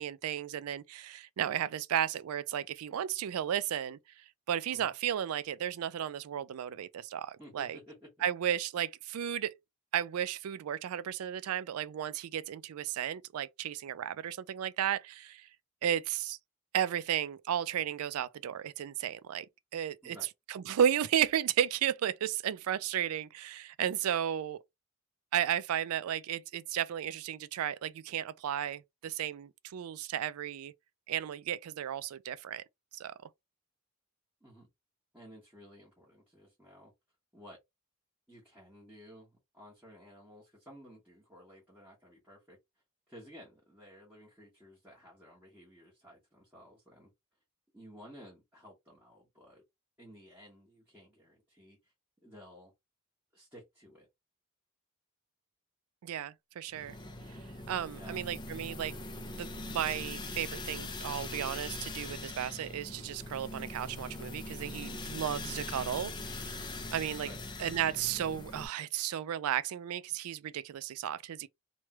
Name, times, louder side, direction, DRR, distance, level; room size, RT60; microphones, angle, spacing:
voice 1, 0.0-7.8 8.2-9.5 9.9-15.5 15.8-16.4 16.7-19.5 19.7-20.2 20.5-24.6 25.3-30.7 31.1-32.6 32.9-33.1 56.0-57.0 57.7-58.9 59.4-66.6 66.9-67.3 67.6-71.5, right 10 dB, 80° right, 0.3 m, -34 dB
voice 2, 7.4-8.1 20.0-20.3 34.4-34.7 35.1-36.9 37.3-37.6 38.3-42.6 43.1-47.1 47.7-49.6 50.0-51.9 52.2-52.7 53.3-54.1 57.9-58.3 65.5-65.6 67.2-67.4, equal, 10° right, 1.2 m, -54 dB
sound 1, 56.7-68.7, left 2 dB, 20° left, 0.4 m, -42 dB
3.1 x 2.2 x 2.9 m
head